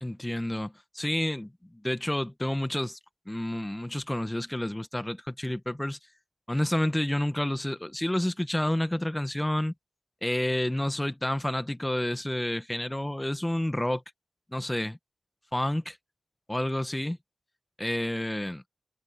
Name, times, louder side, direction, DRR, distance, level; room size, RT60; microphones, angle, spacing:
voice 1, 0.0-3.0 3.3-6.0 6.5-9.7 10.2-14.0 14.5-15.0 15.5-16.0 16.5-17.2 17.8-18.6, left 1 dB, 10° left, 1.2 m, -29 dB
wide cardioid pair, 75°, 0 cm